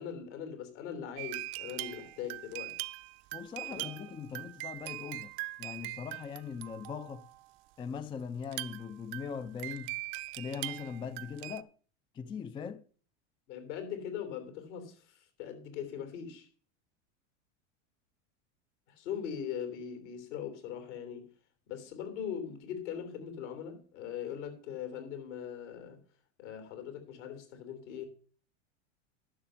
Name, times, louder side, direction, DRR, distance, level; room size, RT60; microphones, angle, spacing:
voice 1, 0.0-2.8 3.7-3.8 13.5-16.5 18.9-21.3 21.7-26.0 26.4-28.1, left 8 dB, 75° left, 3.4 m, -40 dB
sound 1, 1.2-7.5 8.4-11.6, right 21 dB, 45° right, 0.6 m, -41 dB
voice 2, 3.3-5.3 5.6-7.3 7.8-10.0 10.4-11.7 12.1-12.8, left 6 dB, 15° left, 0.4 m, -40 dB
11.0 x 6.5 x 5.7 m
supercardioid pair, 120°, 36 cm